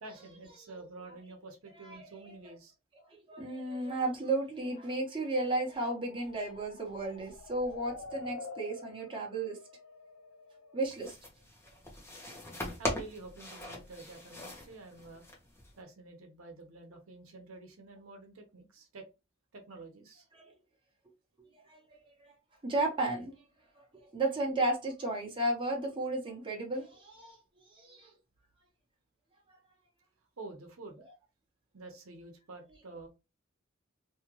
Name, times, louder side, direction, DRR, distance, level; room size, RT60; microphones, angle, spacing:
voice 1, 0.0-2.7 12.8-15.2 15.8-19.1 19.5-20.3 30.4-31.0 31.7-33.1, right 3 dB, 85° right, 0.8 m, -49 dB
voice 2, 1.8-2.1 3.1-9.6 10.7-11.2 20.3-20.5 21.7-22.0 22.6-23.3 23.7-27.4 27.8-28.1, right 2 dB, 25° right, 1.0 m, -34 dB
sound 1, 5.0-10.8, left 3 dB, 75° left, 0.5 m, -48 dB
sound 2, 10.8-15.8, left 1 dB, 15° left, 0.8 m, -41 dB
2.8 x 2.4 x 2.9 m
head